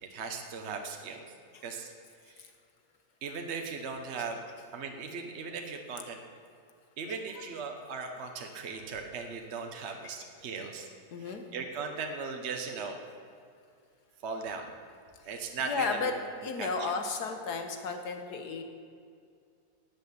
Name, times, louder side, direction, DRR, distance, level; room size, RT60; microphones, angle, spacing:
voice 1, 0.0-1.2 1.6-1.9 2.3-2.4 3.2-4.4 4.7-6.2 7.0-10.9 11.2-13.0 14.2-14.7 15.3-16.2 16.6-16.9, right 4 dB, 50° right, 4 dB, 1.2 m, -38 dB
voice 2, 11.1-11.4 15.6-16.1 16.4-18.6, left 4 dB, 85° left, 5 dB, 1.8 m, -34 dB
12.5 x 8.3 x 8.4 m, 2.3 s
omnidirectional pair, 1.7 m